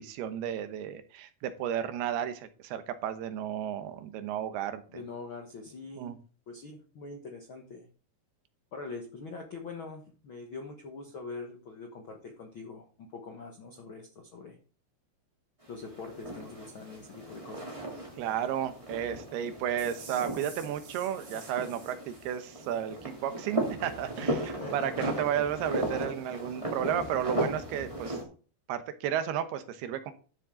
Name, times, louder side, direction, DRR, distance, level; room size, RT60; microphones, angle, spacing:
voice 1, 0.0-5.0 6.0-6.2 18.2-24.4 24.7-28.2 28.7-30.1, right 10 dB, 90° right, 10 dB, 3.0 m, -33 dB
voice 2, 4.9-6.1 6.5-7.9 8.7-14.6 15.7-17.8 24.3-24.9, left 4 dB, 70° left, 3 dB, 1.2 m, -43 dB
sound 1, 15.6-28.2, right 1 dB, 10° right, 2.1 m, -36 dB
sound 2, 19.8-22.8, right 4 dB, 60° right, 4.5 m, -50 dB
12.5 x 7.4 x 3.8 m, 0.38 s
omnidirectional pair, 4.4 m